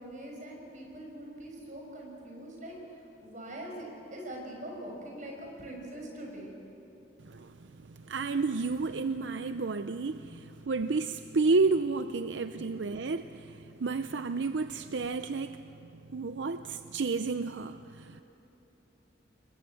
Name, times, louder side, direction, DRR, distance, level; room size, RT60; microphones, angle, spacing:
voice 1, 0.0-6.6 10.3-10.5 12.6-12.7, right 1 dB, 45° right, 0 dB, 6.1 m, -43 dB
voice 2, 7.2-18.2, right 3 dB, 75° right, 9 dB, 0.6 m, -31 dB
28.5 x 21.5 x 7.9 m, 2.9 s
head